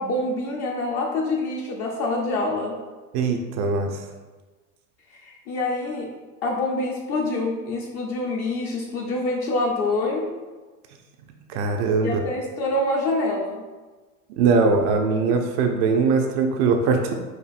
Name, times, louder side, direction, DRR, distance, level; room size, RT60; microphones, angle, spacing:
voice 1, 0.0-2.8 5.1-6.1 6.4-10.2 12.0-13.6, left 2 dB, 40° left, -1 dB, 0.5 m, -26 dB
voice 2, 3.1-3.9 11.5-12.2 14.4-17.1, right 4 dB, 45° right, 3 dB, 0.4 m, -21 dB
4.4 x 2.4 x 2.4 m, 1.3 s
hypercardioid pair, 90°, 44 cm